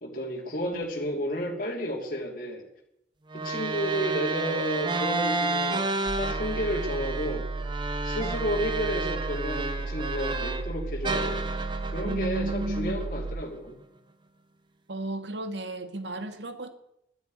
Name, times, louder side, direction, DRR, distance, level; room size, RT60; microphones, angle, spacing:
voice 1, 0.0-2.6 3.3-5.8 6.2-7.5 8.0-11.5 11.9-13.8, equal, 50° left, -2 dB, 3.0 m, -32 dB
sound 1, 3.3-10.7 11.0-13.4, right 3 dB, 25° right, 1.2 m, -31 dB
sound 2, 6.1-13.4, right 3 dB, 50° right, 0.7 m, -34 dB
voice 2, 12.0-13.0 14.9-16.7, right 2 dB, 90° right, 8 dB, 1.8 m, -33 dB
12.0 x 10.5 x 9.4 m, 0.80 s
head